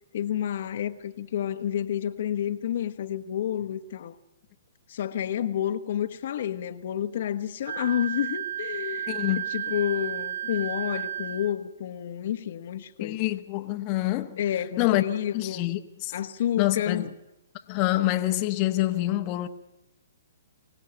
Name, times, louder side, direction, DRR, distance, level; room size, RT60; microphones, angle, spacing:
voice 1, 0.1-4.2 4.9-9.1 9.5-13.3 14.4-15.7 16.1-17.1, left 10 dB, 60° left, 1.2 m, -30 dB
Wind instrument woodwind instrument, 7.6-11.5, right 10 dB, 85° right, 1.2 m, -33 dB
voice 2, 9.1-9.5 13.0-14.4 14.8-15.0 15.3-16.1 16.6-17.1 17.7-19.5, left 16 dB, 35° left, 1.1 m, -26 dB
24.5 x 16.5 x 8.8 m
hypercardioid pair, 130°, 0 cm